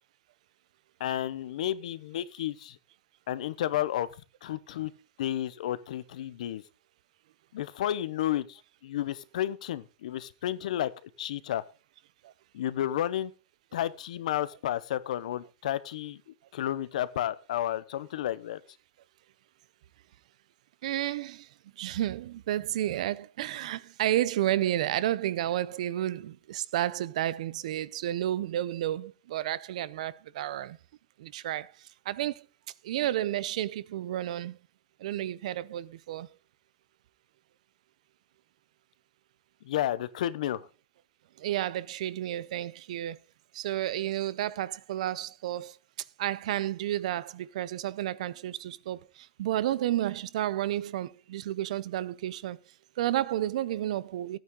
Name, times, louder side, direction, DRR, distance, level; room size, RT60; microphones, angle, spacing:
voice 1, 1.0-2.8 3.3-4.1 4.4-4.9 5.2-6.6 7.5-11.6 12.5-13.3 13.7-18.6 39.6-40.7, left 12 dB, 85° left, 0.9 m, -32 dB
voice 2, 20.8-21.5 21.8-30.8 31.2-31.7 32.1-32.4 32.8-34.6 35.0-36.3 41.4-43.2 43.5-45.8 46.2-52.6 53.0-54.4, right 13 dB, 75° right, 0.6 m, -31 dB
14.0 x 9.2 x 3.8 m
supercardioid pair, 165°, 4 cm